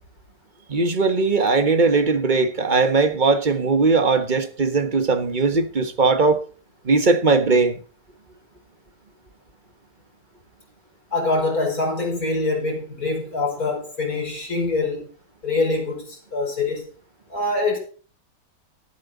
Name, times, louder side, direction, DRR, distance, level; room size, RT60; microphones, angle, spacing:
voice 1, 0.7-6.4 6.8-7.8, right 4 dB, 35° right, 1.4 m, -19 dB
voice 2, 11.1-15.1 15.4-16.9 17.3-17.8, left 3 dB, 80° left, 5.5 m, -24 dB
13.5 x 11.0 x 3.9 m
omnidirectional pair, 1.5 m